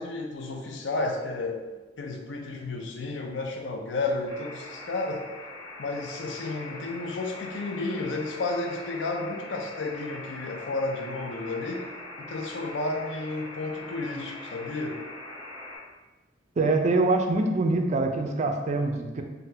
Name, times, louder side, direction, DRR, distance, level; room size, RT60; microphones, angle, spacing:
voice 1, 0.0-1.6 2.0-5.2 5.8-11.8 12.2-15.0, left 2 dB, 70° left, 2 dB, 0.5 m, -32 dB
sound 1, 4.3-15.8, left 2 dB, 10° left, 0.9 m, -42 dB
voice 2, 16.6-19.2, right 2 dB, 40° right, 4 dB, 0.3 m, -24 dB
3.9 x 2.1 x 2.7 m, 1.2 s
head